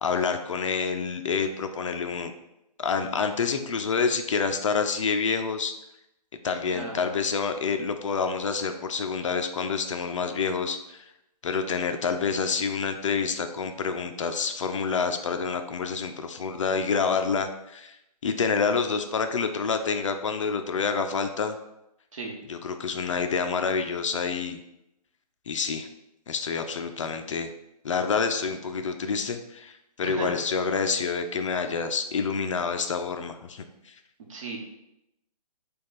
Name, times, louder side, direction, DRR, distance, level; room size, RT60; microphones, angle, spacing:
voice 1, 0.0-2.3 2.8-5.7 6.4-11.0 11.4-18.0 18.2-21.6 22.5-24.6 25.5-25.9 26.3-27.5 27.8-33.9, left 5 dB, 50° left, 7 dB, 0.4 m, -28 dB
voice 2, 6.7-7.0 22.1-22.3 30.0-30.3 34.3-34.6, right 4 dB, 50° right, 0 dB, 1.1 m, -34 dB
5.0 x 2.3 x 4.1 m, 0.86 s
hypercardioid pair, 150°, 20 cm